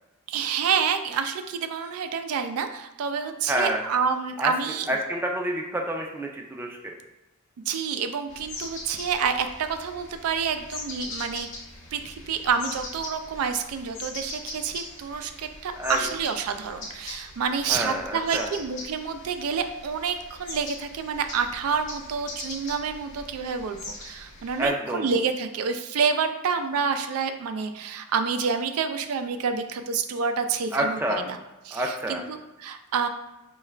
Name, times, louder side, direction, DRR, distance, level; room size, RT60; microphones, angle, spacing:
voice 1, 0.3-4.9 7.7-11.5 11.9-31.4 31.6-33.1, right 6 dB, 80° right, 8 dB, 0.4 m, -28 dB
voice 2, 3.5-3.8 4.4-4.5 4.9-6.9 15.8-16.0 17.7-18.5 24.6-25.1 30.7-31.2 31.7-32.2, right 1 dB, 10° right, 1 dB, 0.4 m, -28 dB
sound 1, 8.3-24.7, left 2 dB, 60° left, 1.0 m, -41 dB
4.7 x 2.3 x 3.2 m, 0.99 s
head